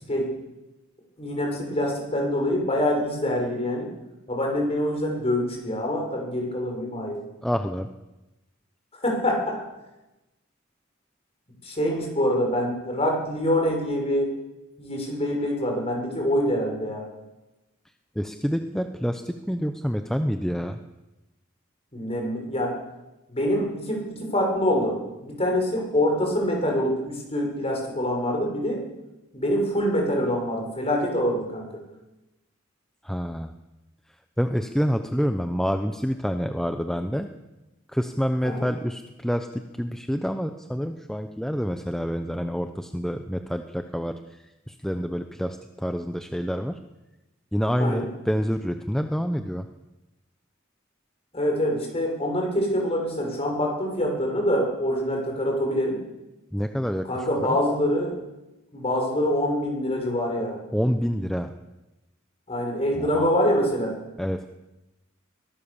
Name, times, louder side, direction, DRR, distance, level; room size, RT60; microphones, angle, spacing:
voice 1, 1.2-3.9 4.3-7.2 8.9-9.6 11.6-14.3 14.8-17.1 21.9-22.8 23.3-28.8 29.3-31.7 38.4-38.7 47.8-48.0 51.3-56.0 57.0-58.2 58.7-60.6 62.5-64.0, equal, 30° left, 1 dB, 6.5 m, -25 dB
voice 2, 7.4-7.9 18.2-20.8 33.0-33.5 34.4-37.3 37.9-44.4 44.7-46.8 47.5-49.7 56.5-57.6 60.7-61.5 63.0-63.3 64.2-64.4, equal, ahead, 7 dB, 0.8 m, -27 dB
23.0 x 17.0 x 7.2 m, 1.0 s
head